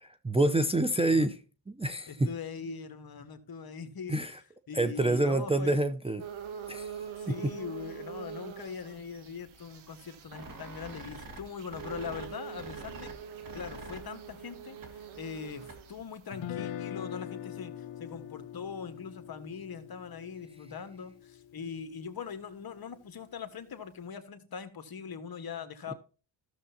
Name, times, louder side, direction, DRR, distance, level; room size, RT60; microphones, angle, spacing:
voice 1, 0.0-1.4 1.7-2.3 4.1-4.4 4.7-6.2 6.7-7.0, right 2 dB, 15° right, 0.6 m, -27 dB
voice 2, 2.1-4.2 4.7-5.8 7.2-13.1 13.5-25.9, left 6 dB, 50° left, 1.4 m, -41 dB
sound 1, 6.2-16.4, right 8 dB, 80° right, 1.3 m, -45 dB
sound 2, 10.3-16.0, right 2 dB, 45° right, 2.1 m, -48 dB
Guitar, 16.3-22.4, left 10 dB, 75° left, 0.8 m, -43 dB
14.5 x 6.8 x 2.7 m
cardioid pair, 90°, 47 cm